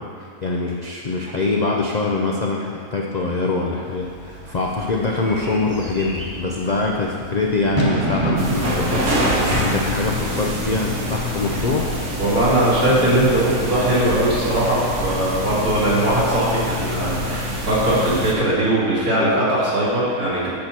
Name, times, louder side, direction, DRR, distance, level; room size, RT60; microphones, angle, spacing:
voice 1, 0.0-11.9, left 3 dB, 75° left, -1 dB, 0.3 m, -24 dB
Bird / Fireworks, 3.7-12.9, right 1 dB, 20° right, 1.2 m, -30 dB
sound 1, 5.6-7.0 9.1-10.5 12.6-14.2 16.6-17.3, left 5 dB, 45° left, 1.0 m, -37 dB
sound 2, 8.4-18.3, left 1 dB, 55° right, 1.5 m, -25 dB
voice 2, 12.2-20.5, right 1 dB, 70° right, -8 dB, 2.7 m, -20 dB
8.6 x 6.0 x 4.3 m, 2.2 s
omnidirectional pair, 1.6 m